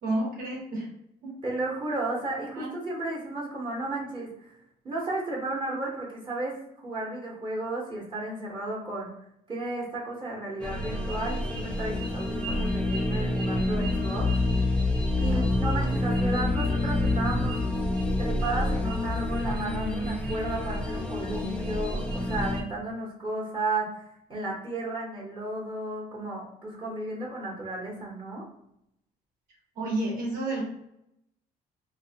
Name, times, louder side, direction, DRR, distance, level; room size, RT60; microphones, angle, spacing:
voice 1, 0.0-0.9 1.2-1.3 2.5-2.7 29.8-30.7, right 1 dB, 60° right, -4 dB, 0.9 m, -30 dB
voice 2, 1.4-4.5 4.8-9.1 9.5-14.4 15.2-17.6 18.2-24.0 24.3-28.4, right 2 dB, 30° right, -4 dB, 0.8 m, -33 dB
sound 1, 10.6-22.6, left 2 dB, 5° left, 0.4 m, -27 dB
2.4 x 2.1 x 2.7 m, 0.78 s
cardioid pair, 110°, 17 cm